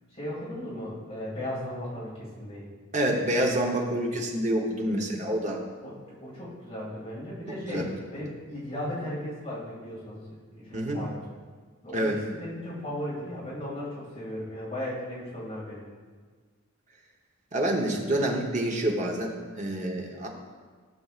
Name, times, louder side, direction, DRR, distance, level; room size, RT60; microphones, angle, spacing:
voice 1, 0.1-2.7 5.8-11.2 11.8-15.8, left 1 dB, 30° left, -7 dB, 2.4 m, -36 dB
voice 2, 2.9-5.6 7.5-7.8 10.7-11.1 11.9-12.2 17.5-20.3, right 1 dB, 35° right, 0 dB, 1.0 m, -27 dB
13.5 x 6.9 x 2.5 m, 1.5 s
head